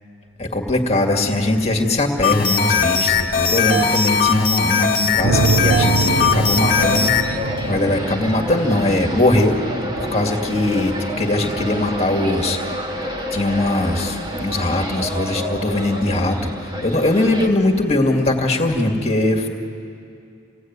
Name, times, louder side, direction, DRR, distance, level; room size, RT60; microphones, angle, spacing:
voice 1, 0.4-7.1 7.7-9.6 10.0-12.6 13.3-16.5 16.8-19.5, left 2 dB, 30° left, 2 dB, 2.3 m, -20 dB
sound 1, 2.2-7.3, left 5 dB, 45° left, 1.7 m, -19 dB
sound 2, 5.2-9.4, right 3 dB, 60° right, 0.6 m, -22 dB
sound 3, 6.8-17.5, equal, 25° right, 1.9 m, -29 dB
28.5 x 17.5 x 9.7 m, 2.5 s
head